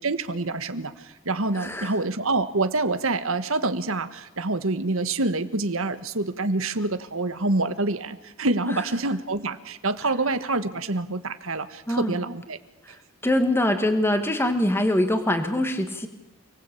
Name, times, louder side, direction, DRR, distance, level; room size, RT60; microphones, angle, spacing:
voice 1, 0.0-12.6, right 2 dB, 70° right, 10 dB, 1.6 m, -26 dB
voice 2, 1.5-1.9 8.7-8.8 11.9-12.2 12.9-13.0 13.2-16.1, left 1 dB, 10° left, 7 dB, 2.1 m, -23 dB
29.5 x 19.5 x 8.6 m, 0.92 s
head